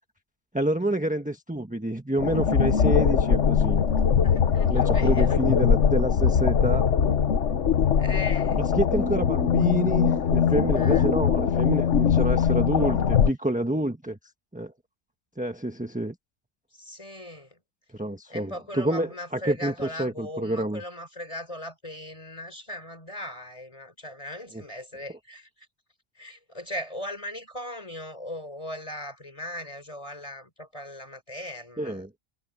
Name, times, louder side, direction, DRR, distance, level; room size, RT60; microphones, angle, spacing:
voice 1, 0.5-3.8 4.7-6.9 8.8-14.2 14.5-14.7 15.4-16.1 17.9-20.8 24.5-24.6 31.8-32.1, right 1 dB, 5° right, 1.3 m, -28 dB
sound 1, 2.2-13.3, left 7 dB, 85° left, 1.4 m, -21 dB
voice 2, 3.9-5.4 8.0-8.6 10.8-11.1 16.7-17.6 18.3-25.7 26.1-32.1, left 1 dB, 30° left, 4.5 m, -38 dB
omnidirectional pair, 1.2 m